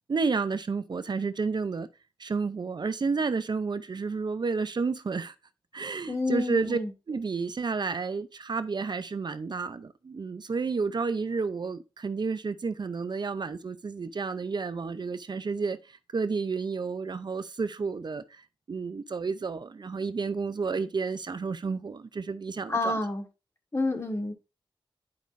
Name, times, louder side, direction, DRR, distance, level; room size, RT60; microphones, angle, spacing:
voice 1, 0.1-1.9 2.2-5.3 5.7-6.8 7.1-23.0, right 4 dB, 55° right, 0.5 m, -31 dB
voice 2, 6.1-6.9 22.7-23.2 23.7-24.3, left 2 dB, 30° left, 1.6 m, -29 dB
10.5 x 5.1 x 2.5 m
wide cardioid pair, 65°, 9 cm